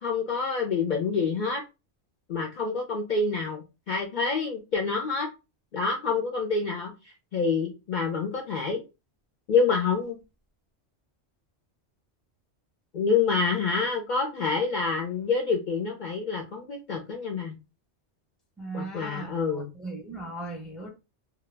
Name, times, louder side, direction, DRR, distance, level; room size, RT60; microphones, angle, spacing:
voice 1, 0.0-1.6 2.3-5.3 5.7-8.8 9.5-10.2 12.9-17.6 18.7-19.7, left 4 dB, 55° left, 0.6 m, -27 dB
voice 2, 18.6-20.9, right 2 dB, ahead, 0.5 m, -38 dB
2.2 x 2.1 x 3.2 m
omnidirectional pair, 1.1 m